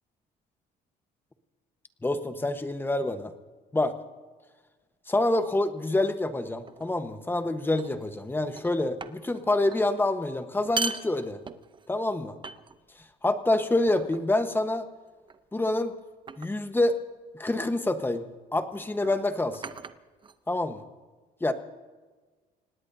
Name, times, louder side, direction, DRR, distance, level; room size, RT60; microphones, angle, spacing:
voice 1, 2.0-3.3 3.7-3.9 5.1-11.4 11.9-12.3 13.2-14.8 15.5-15.9 16.4-17.0 17.3-18.2 18.5-19.6 20.5-20.8 21.4-21.5, left 2 dB, 10° left, 8 dB, 1.2 m, -27 dB
sound 1, 6.7-7.0 7.8-8.2 8.5-9.4 9.7-9.9 10.5-11.9 12.4-13.0 13.9-14.3 15.3-15.6 16.3-16.7 17.9-18.0 19.0-20.7, right 4 dB, 30° right, 0.7 m, -38 dB
26.0 x 18.5 x 2.8 m, 1.3 s
cardioid pair, 110°, 17 cm